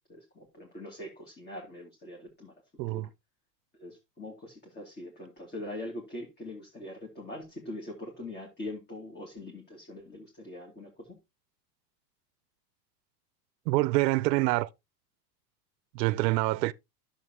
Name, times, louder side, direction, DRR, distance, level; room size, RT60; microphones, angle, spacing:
voice 1, 0.1-2.5 2.9-3.0 3.8-11.2, left 1 dB, 20° left, 2.6 m, -42 dB
voice 2, 2.8-3.1 13.7-14.7 15.9-16.7, right 20 dB, 75° right, 0.7 m, -26 dB
10.5 x 7.2 x 2.8 m
supercardioid pair, 130°, 50 cm